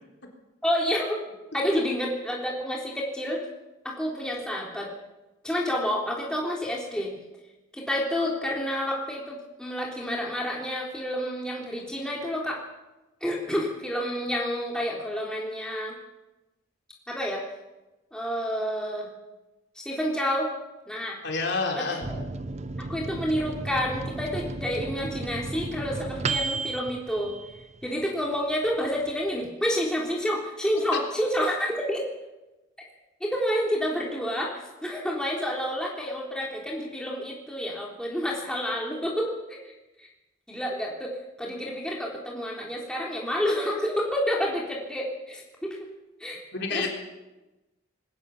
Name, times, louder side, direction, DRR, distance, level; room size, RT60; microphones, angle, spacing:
voice 1, 0.6-1.2 1.5-3.5 3.8-4.9 5.4-7.1 7.7-12.6 13.2-16.0 17.1-17.4 18.1-19.1 19.7-20.5 20.9-21.2 21.7-22.2 22.8-27.4 27.8-32.0 33.2-39.7 40.0-40.1 40.5-45.9 46.2-46.4 46.7-46.9, equal, 5° left, -2 dB, 3.6 m, -29 dB
voice 2, 21.2-22.1 30.9-31.0 46.5-46.9, left 4 dB, 55° left, 1 dB, 3.9 m, -28 dB
Microwave oven, 22.0-28.1 28.5-28.6 28.8-29.5, right 3 dB, 35° right, 0.7 m, -34 dB
20.5 x 18.5 x 7.3 m, 1.0 s
head